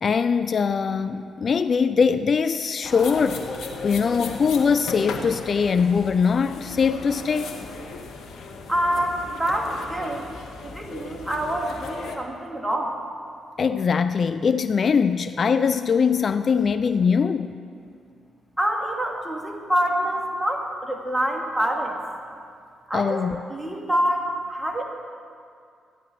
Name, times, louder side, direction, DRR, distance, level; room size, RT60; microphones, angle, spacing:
voice 1, 0.0-3.5 3.8-7.6 13.6-17.6 22.9-23.4, left 6 dB, 50° left, 11 dB, 0.3 m, -22 dB
sound 1, 2.8-12.2, left 4 dB, 70° left, 1.1 m, -36 dB
voice 2, 8.7-10.3 10.6-13.0 18.6-22.0 22.9-23.3 23.5-24.8, right 1 dB, 10° right, 1 dB, 2.0 m, -26 dB
14.5 x 10.0 x 4.3 m, 2.3 s
hypercardioid pair, 45°, 0 cm